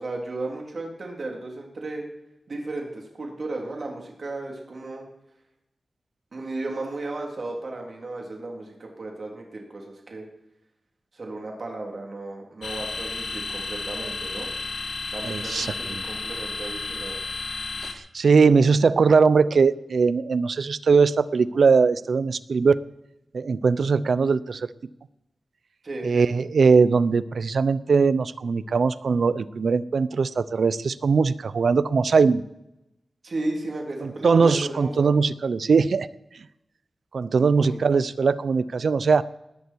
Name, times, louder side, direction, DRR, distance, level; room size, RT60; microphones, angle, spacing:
voice 1, 0.0-2.1 2.5-5.0 6.3-10.3 11.1-14.5 15.1-17.2 25.8-26.2 33.2-35.1 37.4-37.8, right 2 dB, 60° right, 0 dB, 3.8 m, -34 dB
sound 1, 12.6-17.9, left 4 dB, 80° left, 1.9 m, -32 dB
voice 2, 15.2-16.0 18.1-22.8 23.3-24.7 26.0-32.4 34.0-36.1 37.1-39.2, right 5 dB, 80° right, 16 dB, 0.7 m, -20 dB
19.5 x 13.5 x 4.7 m, 0.88 s
wide cardioid pair, 105°, 0 cm